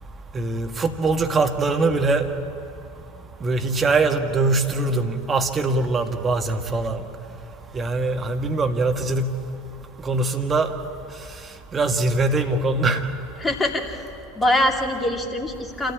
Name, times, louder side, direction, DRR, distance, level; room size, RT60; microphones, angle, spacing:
voice 1, 0.3-2.3 3.4-7.0 7.7-9.3 10.0-10.7 11.7-13.0, right 3 dB, 25° right, 6 dB, 1.8 m, -22 dB
voice 2, 13.4-14.0 14.4-15.9, left 1 dB, 15° left, 2 dB, 2.7 m, -23 dB
27.0 x 14.5 x 9.9 m, 2.6 s
hypercardioid pair, 80°, 0 cm